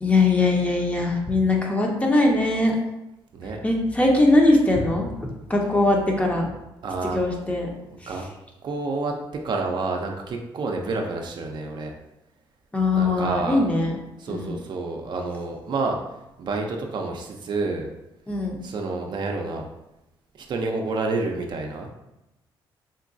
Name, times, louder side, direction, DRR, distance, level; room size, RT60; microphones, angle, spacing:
voice 1, 0.0-2.7 3.6-5.1 5.5-6.5 7.1-7.7 12.7-14.0 14.3-14.6 18.3-18.6, left 2 dB, 15° left, 0 dB, 0.6 m, -21 dB
voice 2, 6.8-7.2 8.1-8.3 8.6-9.1 9.4-11.9 12.9-13.6 14.2-16.0 16.4-17.9 18.6-19.7 20.4-21.9, right 3 dB, 55° right, 2 dB, 0.4 m, -29 dB
3.7 x 2.2 x 2.5 m, 0.92 s
cardioid pair, 85°, 9 cm